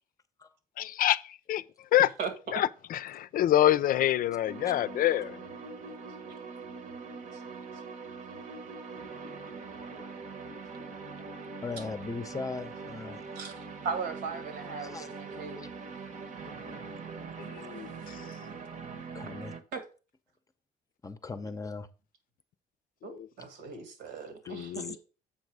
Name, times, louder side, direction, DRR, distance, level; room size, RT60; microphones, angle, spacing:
voice 1, 0.8-1.6 1.9-2.1 2.5-5.4 17.4-18.2 23.0-23.2 24.5-25.0, left 12 dB, 55° left, 0.5 m, -27 dB
voice 2, 2.2-2.6 7.3-7.4 13.4-15.6 19.7-19.8 23.0-25.0, right 5 dB, 85° right, 2.0 m, -38 dB
sound 1, 4.5-19.6, right 4 dB, 50° right, 1.1 m, -42 dB
voice 3, 11.6-13.2 14.8-15.1 16.4-16.8 17.4-17.5 19.1-19.6 21.0-21.9, left 4 dB, 20° left, 0.7 m, -39 dB
7.4 x 5.3 x 4.8 m
cardioid pair, 110°, 17 cm